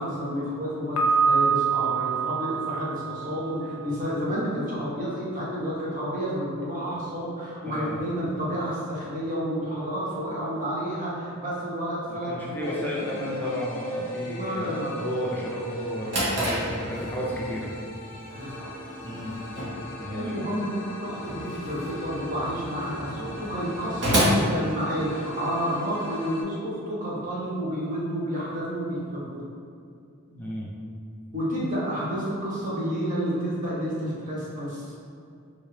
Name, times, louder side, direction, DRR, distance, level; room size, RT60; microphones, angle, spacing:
voice 1, 0.0-12.8 13.2-13.4 14.2-14.9 18.3-18.9 20.1-29.4 31.3-34.9, equal, 35° right, -7 dB, 1.1 m, -30 dB
Piano, 1.0-3.9, right 5 dB, 75° left, 0.5 m, -25 dB
voice 2, 7.6-8.0 12.0-17.8 19.0-19.3 20.0-20.4 30.3-30.7, equal, 10° left, -5 dB, 0.5 m, -33 dB
sound 1, 12.6-26.4, equal, 60° left, 1.0 m, -38 dB
Drawer open or close, 15.7-25.4, equal, 55° right, 1.2 m, -31 dB
4.7 x 2.8 x 3.3 m, 2.4 s
head